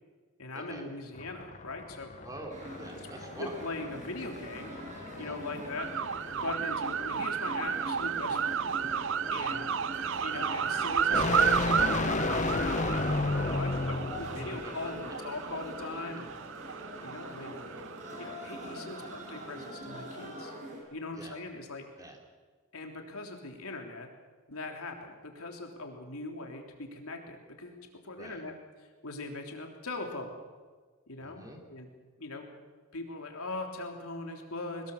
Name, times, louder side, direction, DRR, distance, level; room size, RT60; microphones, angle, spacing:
voice 1, 0.4-2.1 3.4-4.7 5.2-5.9 6.3-8.6 9.3-9.7 10.2-16.3 17.0-17.6 18.2-20.5 20.9-21.9 22.7-24.1 24.5-28.5 29.0-30.4 31.1-31.4 31.7-31.9 32.2-32.4 32.9-34.9, left 2 dB, 90° left, 3 dB, 3.5 m, -40 dB
sound 1, 1.2-14.7, left 3 dB, 35° left, 0.7 m, -34 dB
voice 2, 2.2-3.5 5.1-5.4 9.3-9.5 14.3-14.7 17.0-17.1 21.1-21.4 22.0-22.2 28.2-28.4 31.2-31.6, right 1 dB, 15° right, 2 dB, 3.3 m, -46 dB
sound 2, 2.5-20.8, equal, 35° right, 6.2 m, -43 dB
sound 3, 5.8-19.7, right 8 dB, 60° right, 0.5 m, -33 dB
22.0 x 20.5 x 7.2 m, 1.5 s
head